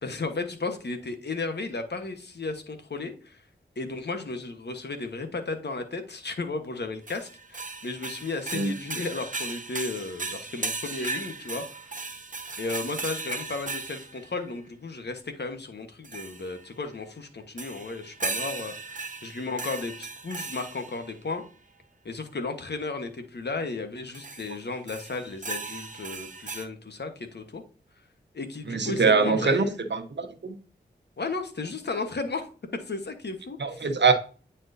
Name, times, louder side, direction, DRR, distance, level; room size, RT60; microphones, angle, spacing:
voice 1, 0.0-3.4 3.8-12.0 12.6-21.4 22.0-27.6 28.3-29.8 31.2-33.8, left 3 dB, 60° left, 1.2 m, -34 dB
sound 1, 7.1-14.2 16.0-16.6 17.6-21.1 24.1-24.5 24.9-26.6, right 4 dB, 45° right, 0.9 m, -36 dB
voice 2, 28.7-29.6 29.9-30.5 33.6-34.1, right 5 dB, 65° right, 1.0 m, -23 dB
9.2 x 4.4 x 2.7 m
cardioid pair, 45°, 19 cm